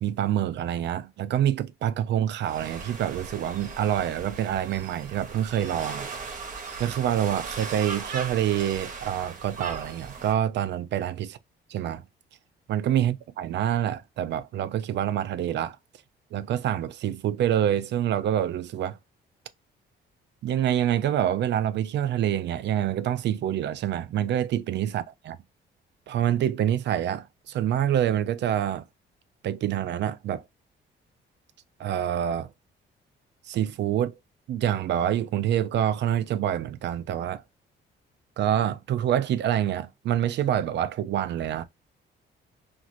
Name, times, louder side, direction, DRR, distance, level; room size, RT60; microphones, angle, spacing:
voice 1, 0.0-6.1 6.8-11.4 11.7-12.0 12.7-15.8 16.3-19.0 20.4-25.4 26.1-28.8 29.4-30.4 31.8-32.5 33.5-34.1 34.5-37.4 38.4-41.6, right 10 dB, 65° right, 0.4 m, -26 dB
sound 1, 2.4-10.3, right 5 dB, 40° right, 0.8 m, -38 dB
3.0 x 2.5 x 2.4 m
cardioid pair, 90°, 20 cm